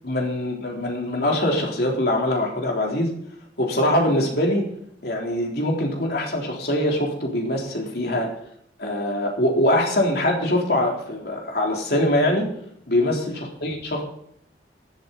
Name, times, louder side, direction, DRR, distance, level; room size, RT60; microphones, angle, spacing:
voice 1, 0.0-3.1 3.6-4.7 5.0-8.3 8.8-12.5 12.9-14.0, left 1 dB, 65° left, 0 dB, 3.8 m, -23 dB
14.5 x 12.0 x 4.2 m, 0.71 s
head